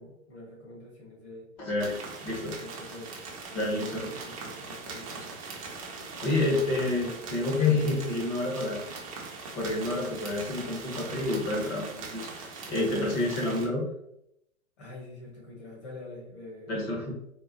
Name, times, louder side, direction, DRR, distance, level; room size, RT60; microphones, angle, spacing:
voice 1, 0.0-1.5 2.3-3.1 3.5-5.4 14.8-16.8, left 2 dB, 50° left, -2 dB, 1.4 m, -45 dB
voice 2, 1.6-2.0 2.2-2.5 3.5-3.9 6.2-8.8 9.5-13.8 16.7-17.2, left 2 dB, 25° left, -1 dB, 0.7 m, -28 dB
sound 1, 1.8-13.7, right 4 dB, 25° right, 0.4 m, -41 dB
3.7 x 2.1 x 2.6 m, 0.77 s
figure-of-eight pair, 125°, 41 cm